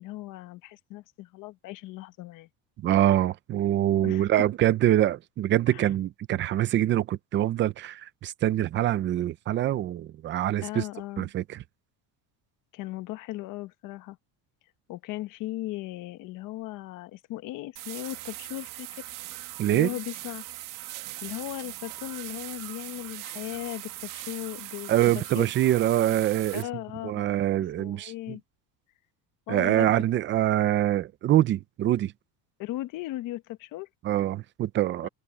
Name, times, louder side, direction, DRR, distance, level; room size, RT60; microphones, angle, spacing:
voice 1, 0.0-2.5 4.0-4.5 5.7-5.9 10.6-11.3 12.7-14.2 14.9-19.1 19.7-20.4 21.2-25.5 26.5-27.3 27.8-28.4 29.5-29.9 32.6-33.9 35.0-35.1, left 16 dB, 50° left, 1.2 m, -37 dB
voice 2, 2.8-10.8 11.2-11.6 19.6-19.9 24.9-26.6 27.0-28.4 29.5-32.1 34.0-35.1, right 13 dB, 30° right, 0.5 m, -24 dB
sound 1, 17.8-26.6, right 16 dB, 50° right, 1.4 m, -40 dB
open air
cardioid pair, 165°, 41 cm